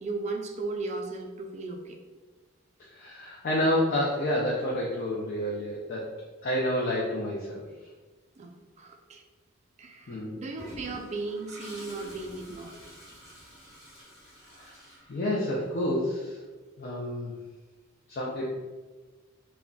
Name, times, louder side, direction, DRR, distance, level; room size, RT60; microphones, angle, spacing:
voice 1, 0.0-2.0 8.4-9.2 9.8-12.8, right 3 dB, 35° right, 2 dB, 0.3 m, -36 dB
voice 2, 2.8-6.0 6.4-7.6 10.1-10.4 14.5-14.7 15.1-16.4 16.8-17.3 18.1-18.5, left 1 dB, 50° left, -4 dB, 0.4 m, -29 dB
Toilet flush, 10.6-15.6, equal, 25° left, 0.9 m, -48 dB
3.7 x 2.1 x 2.2 m, 1.3 s
head